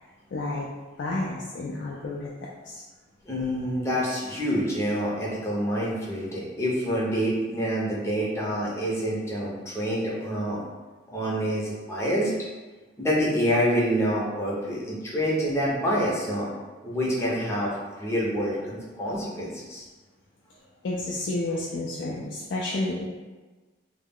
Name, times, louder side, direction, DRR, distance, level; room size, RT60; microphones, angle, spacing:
voice 1, 0.3-0.7 1.0-2.3 2.6-2.8 20.8-23.1, left 2 dB, 65° left, -4 dB, 0.3 m, -30 dB
voice 2, 3.3-10.6 11.1-12.3 13.0-16.5 16.8-17.7 18.0-19.9, equal, 15° left, -6 dB, 0.6 m, -27 dB
2.2 x 2.0 x 3.5 m, 1.3 s
head